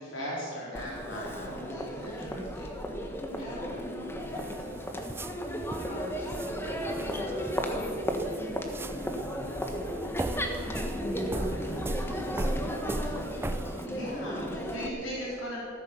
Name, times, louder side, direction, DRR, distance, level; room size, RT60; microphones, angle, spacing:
voice 1, 0.0-3.0 3.3-3.5 4.3-4.7 11.7-11.8 13.9-15.6, equal, 65° left, -5 dB, 3.8 m, -39 dB
Crowd, 0.7-14.9, equal, 10° left, 1.3 m, -34 dB
voice 2, 1.1-1.7 3.2-3.9 4.3-13.2, left 1 dB, 35° left, -3 dB, 5.4 m, -48 dB
sound 1, 4.2-13.9, right 1 dB, 10° right, 0.4 m, -37 dB
15.0 x 13.5 x 7.0 m, 2.3 s
head